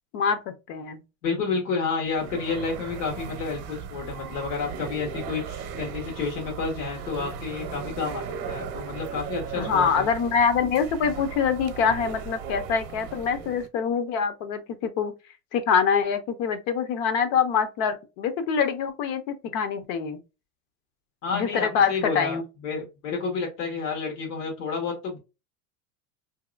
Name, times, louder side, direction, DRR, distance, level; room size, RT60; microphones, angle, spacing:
voice 1, 0.1-1.0 9.6-15.1 15.5-20.2 21.3-22.4, left 6 dB, 55° left, 0.8 m, -25 dB
voice 2, 1.2-10.1 21.2-25.2, left 5 dB, 75° left, 1.3 m, -30 dB
sound 1, 2.0-13.7, right 7 dB, 45° right, 0.7 m, -37 dB
3.0 x 2.8 x 2.4 m
supercardioid pair, 135°, 46 cm